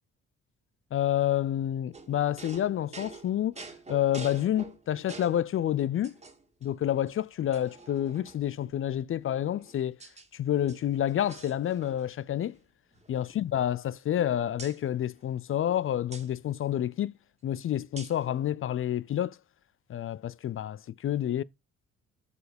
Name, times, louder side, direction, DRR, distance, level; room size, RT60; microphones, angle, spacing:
voice 1, 0.9-3.6 3.9-6.2 6.6-10.0 10.3-12.6 13.1-17.1 17.4-19.4 19.9-21.4, left 11 dB, 45° left, 0.4 m, -29 dB
sound 1, 1.9-5.5 6.0-6.7 7.1-7.2 7.5-8.6 9.3-10.3 10.6-12.1 12.4-12.6 12.9-14.2 14.6-14.8 16.1-16.3 18.0-18.3, right 3 dB, 20° right, 1.9 m, -47 dB
8.0 x 4.7 x 5.1 m
cardioid pair, 90°, 30 cm